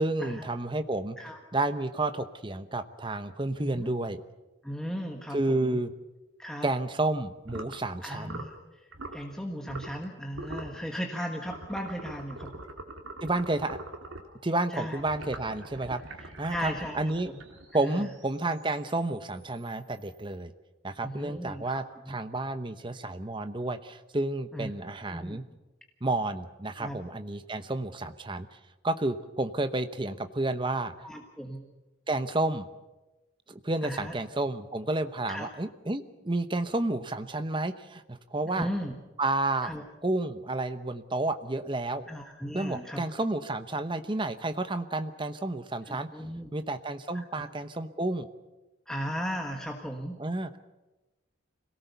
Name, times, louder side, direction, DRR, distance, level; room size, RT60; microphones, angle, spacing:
voice 1, 0.0-1.2 1.5-4.2 5.3-5.9 6.6-8.4 13.2-13.8 14.4-16.0 16.4-17.3 17.7-20.5 20.8-25.4 26.0-28.5 28.8-30.9 32.1-32.7 33.5-38.7 39.2-39.7 40.0-42.1 42.5-46.1 46.5-48.3 50.2-50.6, right 2 dB, 25° right, 10 dB, 0.9 m, -31 dB
voice 2, 3.6-3.9 4.6-5.8 6.4-6.7 8.0-12.6 14.7-15.0 16.2-17.4 17.8-18.1 21.0-21.8 22.1-22.2 24.5-24.7 25.0-25.4 26.8-27.0 31.0-31.7 33.8-34.1 35.3-35.5 38.4-38.9 39.6-39.8 42.1-43.0 45.9-46.5 47.1-47.4 48.9-50.2, equal, 5° left, 2 dB, 1.4 m, -37 dB
sound 1, 7.4-7.8 8.2-8.6 8.9-9.2 9.7-10.0 10.3-10.8 11.5-14.3 15.0-17.8, right 2 dB, 85° right, 2.6 m, -43 dB
sound 2, 9.0-20.4, right 2 dB, 60° right, 7.1 m, -61 dB
25.5 x 18.0 x 6.9 m, 1.1 s
head